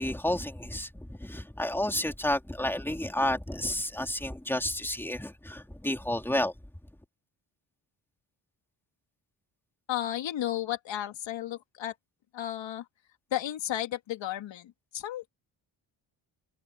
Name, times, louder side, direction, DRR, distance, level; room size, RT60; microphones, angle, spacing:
voice 1, 0.0-6.5, left 1 dB, 5° left, 3.5 m, -31 dB
voice 2, 9.9-12.0 12.3-12.8 13.3-15.3, left 12 dB, 80° left, 2.6 m, -33 dB
cardioid pair, 85°, 44 cm